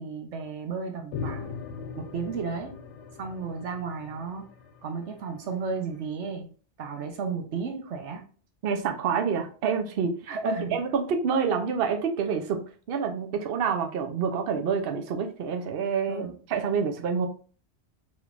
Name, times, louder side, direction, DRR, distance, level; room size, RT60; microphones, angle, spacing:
voice 1, 0.0-1.6 2.0-2.7 3.2-4.4 4.8-6.5 6.8-8.2 10.3-10.8 16.1-16.3, right 4 dB, 90° right, 4 dB, 1.2 m, -33 dB
sound 1, 1.1-5.8, left 5 dB, 85° left, 0.9 m, -40 dB
voice 2, 8.6-12.6 12.9-17.3, right 6 dB, 60° right, 5 dB, 0.8 m, -27 dB
5.1 x 3.2 x 2.4 m, 0.41 s
omnidirectional pair, 1.2 m